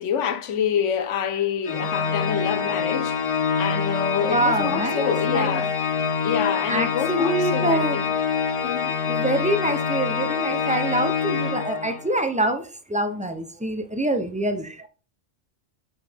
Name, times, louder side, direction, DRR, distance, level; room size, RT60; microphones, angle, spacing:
voice 1, 0.0-3.3 3.6-5.7 6.2-8.0 8.6-8.9, left 8 dB, 80° left, 1.0 m, -27 dB
Organ, 1.6-12.3, left 6 dB, 55° left, 0.3 m, -25 dB
voice 2, 4.2-5.6 6.7-8.0 9.1-14.9, right 1 dB, 10° right, 0.4 m, -25 dB
5.7 x 5.5 x 3.4 m
omnidirectional pair, 1.2 m